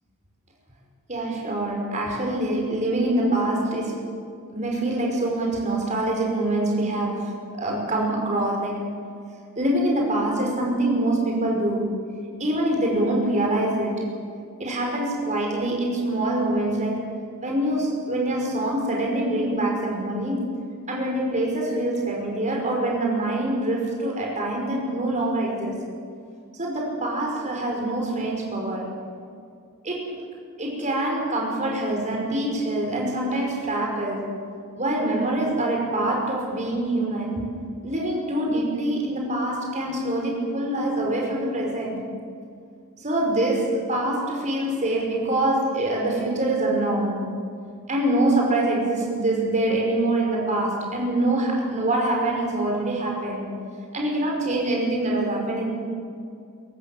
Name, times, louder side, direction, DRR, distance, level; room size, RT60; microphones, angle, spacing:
voice 1, 1.1-4.1 4.5-8.9 9.6-12.0 12.4-14.1 14.6-17.1 17.4-20.6 20.9-25.8 26.6-29.0 29.8-30.2 30.6-34.3 34.8-37.5 37.8-42.0 43.0-47.3 47.9-53.5 53.9-55.7, right 1 dB, 35° right, 0 dB, 5.7 m, -25 dB
23.5 x 17.0 x 7.6 m, 2.3 s
head